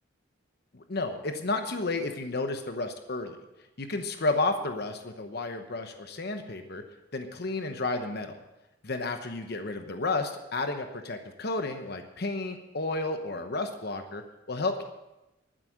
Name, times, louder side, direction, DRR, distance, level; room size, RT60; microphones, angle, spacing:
voice 1, 0.7-3.4 3.8-6.8 7.1-8.4 8.8-14.2 14.5-14.8, left 3 dB, 55° left, 6 dB, 1.0 m, -32 dB
12.0 x 9.7 x 7.4 m, 0.97 s
head